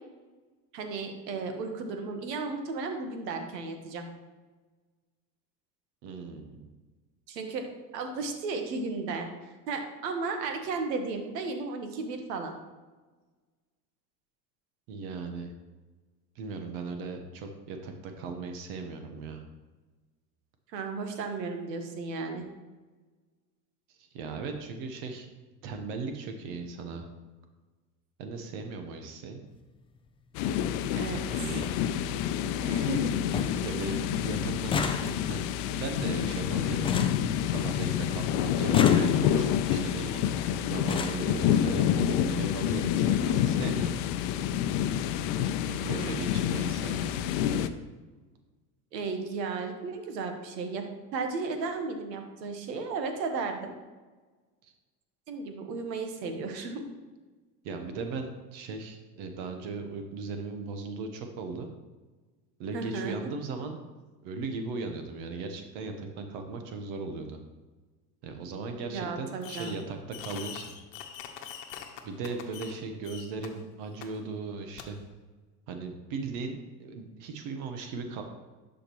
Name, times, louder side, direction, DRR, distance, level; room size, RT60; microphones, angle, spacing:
voice 1, 0.7-4.1 7.3-7.7 7.9-12.5 20.7-22.4 30.9-31.2 32.6-33.2 45.8-46.4 48.9-53.7 55.3-56.8 62.7-63.3 68.9-69.8, right 4 dB, 85° right, 5 dB, 1.4 m, -34 dB
voice 2, 6.0-6.7 14.9-15.5 16.3-19.4 24.0-25.3 25.6-27.1 28.2-29.4 30.9-31.7 33.6-36.9 37.5-44.0 45.6-47.2 54.6-54.7 57.6-61.7 62.6-63.8 64.2-67.4 68.2-70.7 72.0-75.0 75.7-78.2, right 4 dB, 60° right, 5 dB, 1.1 m, -37 dB
sound 1, 29.5-29.7 30.9-31.0 31.2-31.3 31.6-31.8 32.3-32.7 33.0-33.1 33.3-33.7 34.0-38.0 38.5-39.5 40.3-40.4 40.7-41.3 42.2-42.3 42.7-42.9 43.1-43.3, left 4 dB, 15° left, 0.3 m, -35 dB
sound 2, 30.3-47.7, left 10 dB, 60° left, 0.6 m, -28 dB
Fireworks, 69.4-69.8 70.1-72.8 73.0-73.5 74.0-74.1 74.8-74.9, left 9 dB, 80° left, 1.0 m, -43 dB
11.5 x 5.1 x 3.1 m, 1.3 s
hypercardioid pair, 95°, 49 cm